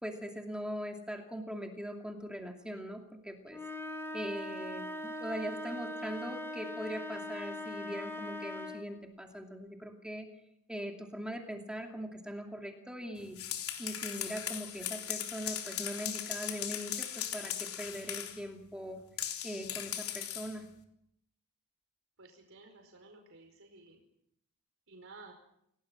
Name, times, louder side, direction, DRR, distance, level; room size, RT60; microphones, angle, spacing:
voice 1, 0.0-3.6 4.1-10.3 10.7-13.4 13.8-19.0 19.4-20.7, equal, 5° right, 2 dB, 2.6 m, -41 dB
sound 1, 3.5-9.0, left 1 dB, 10° left, 3.4 m, -41 dB
sound 2, 13.2-18.4 19.2-20.6, left 10 dB, 80° left, 3.7 m, -38 dB
voice 2, 22.2-24.0 24.9-25.3, right 3 dB, 65° right, 3 dB, 5.0 m, -54 dB
28.5 x 18.5 x 7.6 m, 0.75 s
head